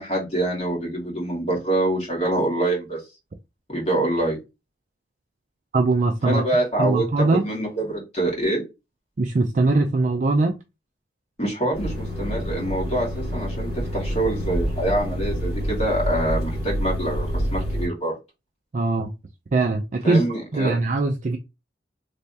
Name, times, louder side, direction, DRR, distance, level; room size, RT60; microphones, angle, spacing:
voice 1, 0.0-3.0 3.7-4.4 6.3-8.6 11.4-18.2 20.0-20.7, right 1 dB, 35° left, 2.1 m, -25 dB
voice 2, 5.7-6.4 6.8-7.4 9.2-10.6 18.7-19.1 19.5-20.2 20.5-21.4, right 3 dB, 45° right, 0.4 m, -21 dB
sound 1, 11.7-17.9, equal, 55° left, 2.3 m, -27 dB
3.4 x 3.3 x 2.7 m
head